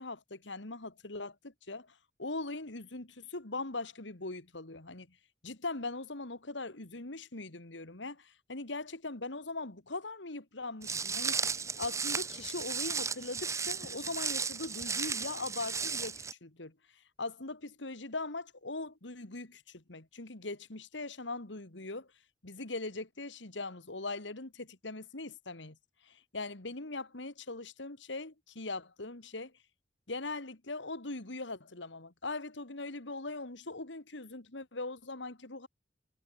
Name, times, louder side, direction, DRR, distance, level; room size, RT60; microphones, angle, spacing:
voice 1, 0.0-5.2 5.4-16.7 17.2-22.1 22.4-25.8 26.0-29.5 30.1-35.7, left 3 dB, 75° left, 2.4 m, -41 dB
Walk footsteps, 10.8-16.3, right 5 dB, 15° right, 0.6 m, -35 dB
head